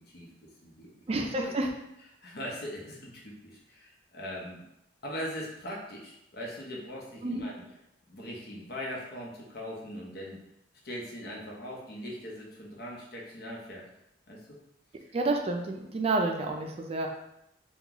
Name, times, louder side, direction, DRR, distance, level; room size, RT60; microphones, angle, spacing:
voice 1, 0.0-0.9 1.2-1.5 2.2-4.6 5.0-7.6 8.1-10.4 10.8-13.9 14.3-14.6, equal, 60° left, -2 dB, 0.8 m, -40 dB
voice 2, 1.1-1.7 7.2-7.4 15.1-17.1, right 2 dB, 35° right, 2 dB, 0.4 m, -29 dB
2.9 x 2.3 x 3.7 m, 0.82 s
head